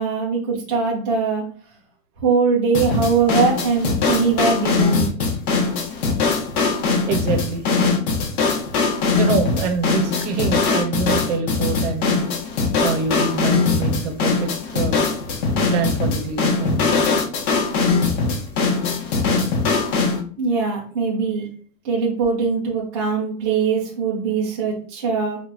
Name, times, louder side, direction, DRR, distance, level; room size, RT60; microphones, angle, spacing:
voice 1, 0.0-1.5 2.2-5.1 20.4-21.5 21.8-25.4, right 5 dB, 20° right, -6 dB, 0.4 m, -21 dB
sound 1, 2.7-20.2, left 4 dB, 60° left, 1.3 m, -21 dB
voice 2, 7.1-7.6 9.2-12.2 12.8-15.1 15.7-17.1, right 4 dB, 45° right, 5 dB, 0.8 m, -25 dB
5.6 x 2.4 x 2.9 m, 0.43 s
supercardioid pair, 170°, 49 cm